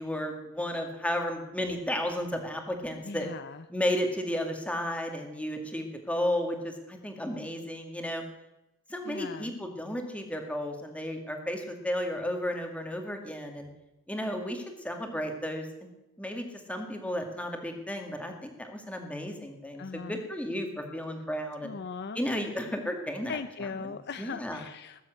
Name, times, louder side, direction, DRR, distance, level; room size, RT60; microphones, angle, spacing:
voice 1, 0.0-3.3 3.7-8.2 8.9-13.7 14.1-15.9 16.2-21.7 22.1-23.3 23.6-24.6, left 1 dB, 5° left, 4 dB, 2.1 m, -33 dB
voice 2, 3.1-3.6 9.0-9.5 19.8-20.2 21.6-22.2 23.3-25.0, left 5 dB, 50° left, 12 dB, 0.5 m, -39 dB
20.0 x 7.6 x 8.0 m, 0.94 s
head